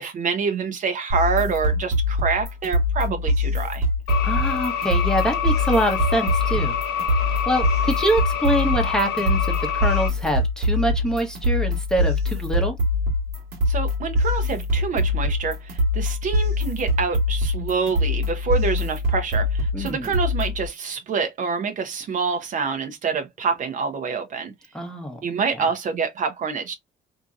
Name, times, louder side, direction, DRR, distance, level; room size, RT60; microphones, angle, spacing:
voice 1, 0.0-3.9 13.7-24.5 25.2-26.8, right 5 dB, 50° right, 0.6 m, -26 dB
sound 1, 1.1-20.7, left 2 dB, 80° right, 1.2 m, -23 dB
sound 2, 4.1-10.1, left 8 dB, 85° left, 0.6 m, -27 dB
voice 2, 4.2-6.8 7.5-12.8 19.7-20.1 24.7-25.2 25.6-25.7, right 1 dB, 5° left, 0.8 m, -25 dB
2.8 x 2.7 x 2.4 m
cardioid pair, 110°, 17 cm